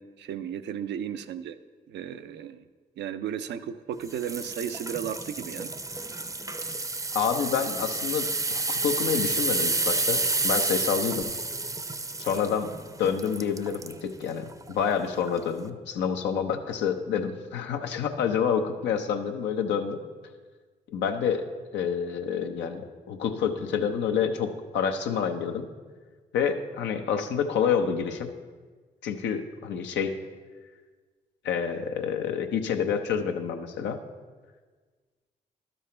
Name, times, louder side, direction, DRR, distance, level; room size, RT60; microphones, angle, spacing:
voice 1, 0.0-1.6 1.9-2.7 3.0-5.7, right 9 dB, 75° right, 10 dB, 0.5 m, -34 dB
sound 1, 4.1-14.0 14.5-14.7 15.3-15.4, right 3 dB, 20° right, 0.6 m, -30 dB
voice 2, 7.1-11.2 12.2-12.7 13.0-20.0 20.9-21.4 21.7-25.6 26.3-28.3 29.0-30.1 31.4-34.0, left 7 dB, 85° left, 5 dB, 0.7 m, -28 dB
12.0 x 5.5 x 4.3 m, 1.4 s
supercardioid pair, 50°, 18 cm